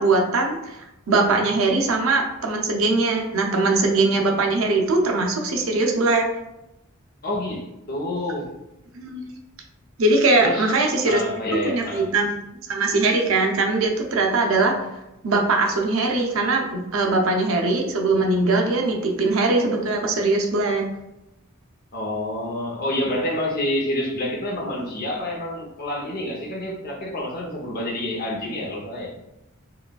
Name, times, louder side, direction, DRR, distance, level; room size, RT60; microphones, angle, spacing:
voice 1, 0.0-6.3 8.9-9.3 10.0-11.2 11.6-12.3 12.7-14.8 15.2-20.8, right 3 dB, 75° right, 2 dB, 0.6 m, -21 dB
voice 2, 7.2-8.5 10.4-10.7 11.0-12.1 21.9-29.1, left 1 dB, 45° left, -2 dB, 0.7 m, -28 dB
4.8 x 2.3 x 2.3 m, 0.89 s
head